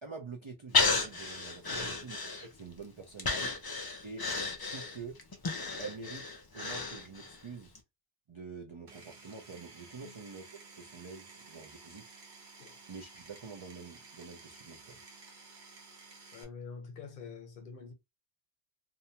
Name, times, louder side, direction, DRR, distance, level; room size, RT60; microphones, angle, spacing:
voice 1, 0.0-3.5 4.0-4.3 4.6-5.2 5.8-7.7 8.3-10.5 10.8-12.1 12.9-15.0, right 4 dB, 50° right, 0.3 m, -46 dB
Breathing, 0.7-2.7 3.2-7.4 7.8-7.9, left 4 dB, 35° left, 0.3 m, -33 dB
Power tool, 8.9-16.4, right 4 dB, 75° right, 1.1 m, -53 dB
voice 2, 16.3-17.9, left 5 dB, 55° left, 1.0 m, -46 dB
2.6 x 2.2 x 2.8 m
omnidirectional pair, 1.1 m